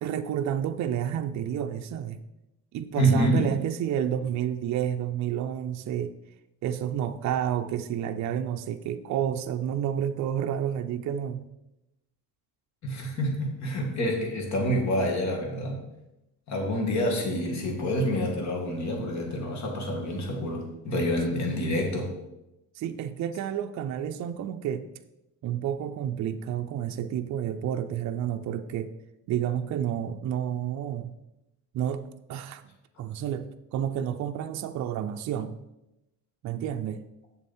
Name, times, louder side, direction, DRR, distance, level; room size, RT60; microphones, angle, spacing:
voice 1, 0.0-2.2 2.7-6.1 6.6-11.5 22.7-24.8 25.4-28.9 29.3-31.1 31.7-32.0 32.3-32.6 33.0-35.6 36.4-37.0, right 9 dB, 50° right, 7 dB, 0.5 m, -30 dB
voice 2, 3.0-3.5 12.8-15.8 16.5-22.1, equal, 50° left, 1 dB, 2.1 m, -27 dB
7.1 x 7.0 x 4.3 m, 0.92 s
cardioid pair, 145°, 36 cm